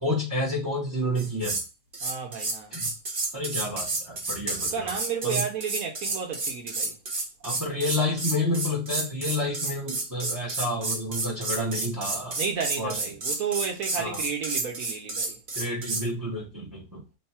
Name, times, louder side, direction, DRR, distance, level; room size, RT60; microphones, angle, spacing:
voice 1, 0.0-1.6 2.7-2.9 3.3-4.9 5.2-5.4 7.4-12.4 12.8-13.0 14.0-14.2 15.5-17.0, left 1 dB, 20° right, 0.5 m, -29 dB
sound 1, 1.2-1.7 1.9-16.1, right 3 dB, 40° right, 0.9 m, -31 dB
voice 2, 2.0-2.7 4.6-6.9 12.4-15.4, right 6 dB, 65° right, 1.0 m, -32 dB
3.2 x 2.2 x 4.1 m
omnidirectional pair, 1.8 m